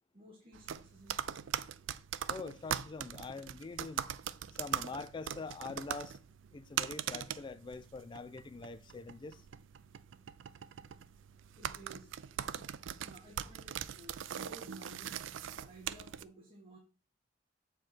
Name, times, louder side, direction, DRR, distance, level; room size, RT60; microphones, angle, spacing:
voice 1, 0.1-1.2 11.6-12.1 12.5-12.7 13.0-16.8, right 1 dB, 30° right, 1.6 m, -56 dB
sound 1, 0.5-16.2, right 9 dB, 85° right, 0.4 m, -41 dB
voice 2, 2.3-4.0 4.5-6.2 6.5-9.4, left 3 dB, 25° left, 0.3 m, -44 dB
7.9 x 4.7 x 4.4 m
head